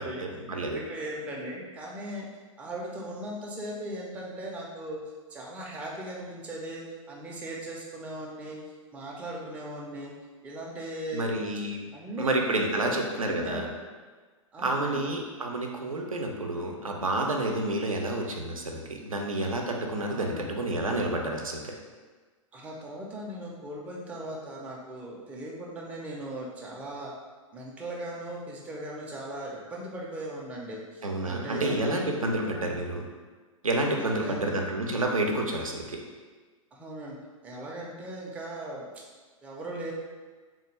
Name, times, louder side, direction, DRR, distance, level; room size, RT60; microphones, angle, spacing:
voice 1, 0.0-0.8 11.1-11.8 12.2-13.7 14.6-21.7 31.0-33.1 33.6-36.0, right 1 dB, 80° right, 1 dB, 0.5 m, -29 dB
voice 2, 0.5-2.3 2.6-5.0 5.3-8.6 8.9-10.1 10.4-11.3 11.9-12.4 12.7-13.0 13.2-13.7 14.5-15.1 20.1-20.6 22.5-27.1 27.5-32.8 34.0-34.5 36.7-37.2 37.4-39.0 39.4-39.9, right 1 dB, 10° right, -4 dB, 0.4 m, -38 dB
3.4 x 2.2 x 3.1 m, 1.4 s
figure-of-eight pair, 105°, 18 cm